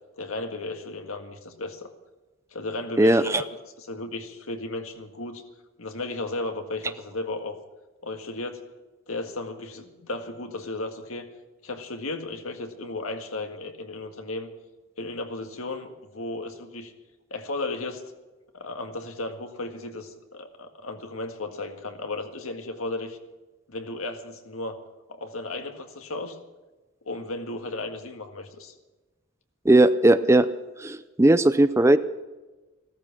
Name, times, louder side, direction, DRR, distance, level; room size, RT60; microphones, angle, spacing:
voice 1, 0.2-1.9 2.5-3.5 3.8-5.4 5.8-7.6 8.0-8.6 9.1-11.3 11.6-14.5 15.0-16.9 17.3-18.0 18.5-23.2 23.7-24.8 25.1-26.4 27.1-28.7, left 2 dB, 85° left, 6 dB, 1.7 m, -34 dB
voice 2, 3.0-3.4 29.7-30.5 30.8-32.0, right 1 dB, 15° right, 13 dB, 0.4 m, -18 dB
15.5 x 13.5 x 6.0 m, 1.2 s
head